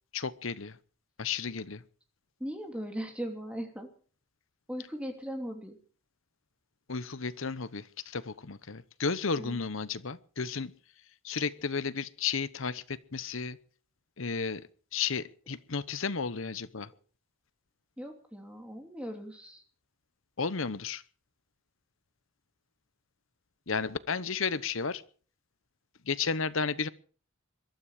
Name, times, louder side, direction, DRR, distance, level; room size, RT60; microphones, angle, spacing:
voice 1, 0.1-0.8 1.2-1.8 6.9-10.7 11.2-13.6 14.2-16.9 20.4-21.0 23.7-25.0 26.0-26.9, left 5 dB, 70° left, 16 dB, 1.0 m, -33 dB
voice 2, 2.4-3.9 4.7-5.8 9.4-9.6 18.0-19.6, equal, 5° right, 3 dB, 2.9 m, -39 dB
22.5 x 13.0 x 5.0 m, 0.41 s
head